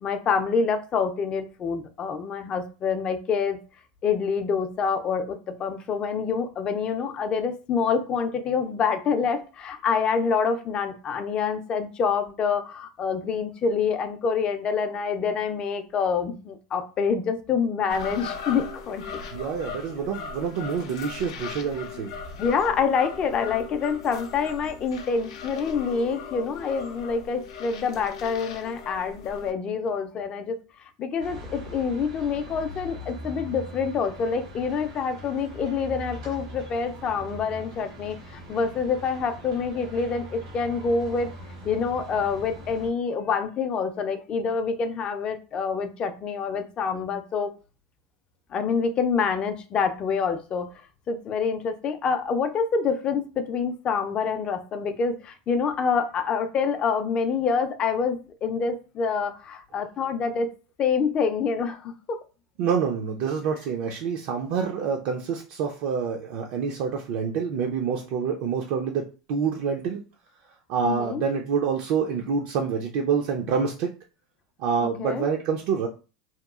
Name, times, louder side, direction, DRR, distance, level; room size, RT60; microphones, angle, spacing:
voice 1, 0.0-3.6 4.0-19.2 22.4-30.6 31.0-41.3 41.6-47.5 48.5-50.7 51.1-60.5 60.8-62.2 70.8-71.2 74.8-75.3, left 5 dB, 35° left, 0.4 m, -26 dB
sound 1, 17.9-29.5, left 5 dB, 85° left, 0.5 m, -39 dB
voice 2, 19.3-22.1 62.6-70.0 70.7-73.9 74.6-75.9, right 6 dB, 60° right, 0.4 m, -27 dB
sound 2, 31.2-42.9, equal, 90° right, 1.1 m, -41 dB
2.8 x 2.3 x 2.3 m
supercardioid pair, 130°, 3 cm